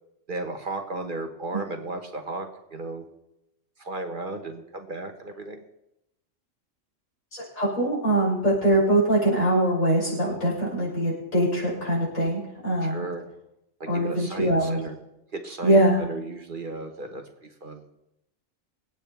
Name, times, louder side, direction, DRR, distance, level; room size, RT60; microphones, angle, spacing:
voice 1, 0.3-3.0 3.8-5.6 12.8-13.2 13.9-15.0 15.3-15.8 16.1-17.2 17.6-17.8, right 2 dB, 40° right, 5 dB, 1.5 m, -34 dB
voice 2, 7.3-13.0 13.9-14.8 15.6-16.0, right 1 dB, 85° left, -7 dB, 7.4 m, -23 dB
26.0 x 9.1 x 3.5 m, 0.85 s
omnidirectional pair, 1.4 m